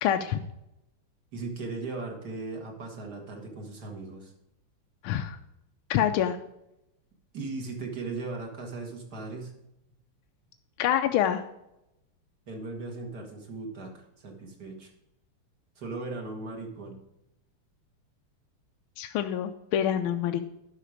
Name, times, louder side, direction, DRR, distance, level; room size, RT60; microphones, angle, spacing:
voice 1, 0.0-0.4 5.0-5.4 5.9-6.4 10.8-11.4 19.0-20.4, left 10 dB, 75° left, 6 dB, 1.4 m, -26 dB
voice 2, 1.3-4.3 7.3-9.5 12.5-14.9 15.8-17.0, right 3 dB, 50° right, 2 dB, 2.3 m, -38 dB
11.0 x 5.8 x 4.9 m, 0.87 s
omnidirectional pair, 2.4 m